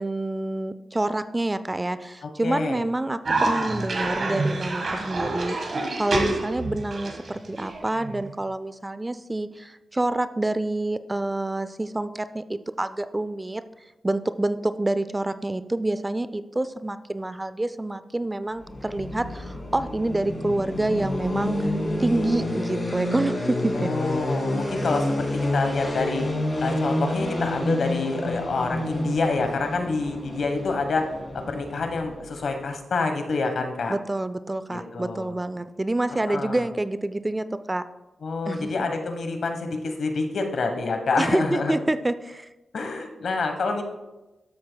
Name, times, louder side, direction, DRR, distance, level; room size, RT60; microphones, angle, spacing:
voice 1, 0.0-13.6 14.0-21.7 22.0-23.9 33.9-37.8 38.5-38.9 41.2-42.5, right 2 dB, 20° right, 12 dB, 0.3 m, -27 dB
voice 2, 2.2-2.8 23.7-25.3 25.5-26.3 26.6-31.1 31.5-33.9 34.7-35.3 36.3-36.6 38.2-41.8 42.7-43.8, left 3 dB, 70° left, 5 dB, 1.2 m, -27 dB
Cough, 3.2-8.3, right 2 dB, 55° right, 1.5 m, -27 dB
sound 1, 18.6-32.5, left 1 dB, 30° left, 2.7 m, -29 dB
13.0 x 7.6 x 2.2 m, 1.1 s
cardioid pair, 85°, 0 cm